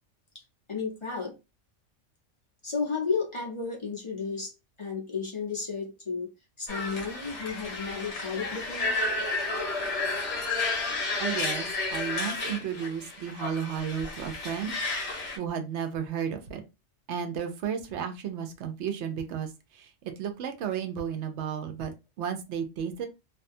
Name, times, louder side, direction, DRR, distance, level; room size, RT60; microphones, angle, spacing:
voice 1, 0.7-1.3 2.6-4.5 4.8-6.3 6.6-8.9, left 5 dB, 30° left, -2 dB, 0.8 m, -33 dB
sound 1, 6.7-15.4, left 3 dB, 60° left, 1.1 m, -32 dB
voice 2, 11.2-16.6 17.1-23.1, right 8 dB, 70° right, 6 dB, 0.8 m, -33 dB
2.6 x 2.2 x 2.5 m, 0.26 s
omnidirectional pair, 1.3 m